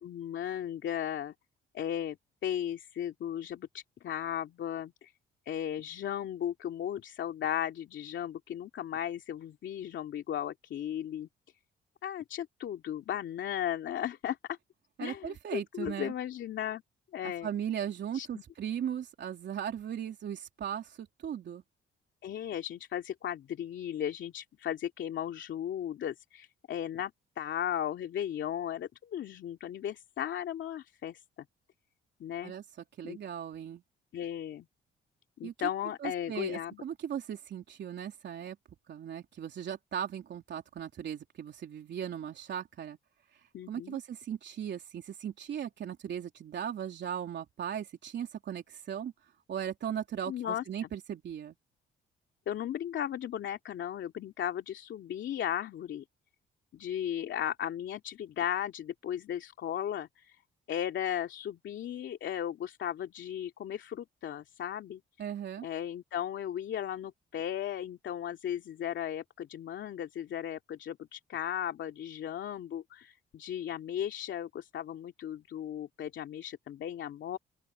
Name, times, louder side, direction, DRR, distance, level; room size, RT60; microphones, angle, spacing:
voice 1, 0.0-1.3 1.7-2.2 2.4-5.1 5.5-11.3 12.0-14.6 15.0-16.8 17.1-17.5 18.1-18.4 22.2-27.1 27.4-31.2 32.2-32.5 33.0-33.2 34.1-34.7 35.4-36.8 43.5-44.0 50.3-50.9 52.5-56.0 56.7-60.4 60.7-65.0 65.6-77.4, left 10 dB, 70° left, 2.7 m, -36 dB
voice 2, 15.0-16.1 17.2-21.6 32.4-32.6 33.0-33.8 35.4-35.5 36.0-38.6 38.9-43.0 43.3-49.1 49.5-51.6 65.2-65.7, right 9 dB, 60° right, 3.5 m, -38 dB
open air
cardioid pair, 90°, 20 cm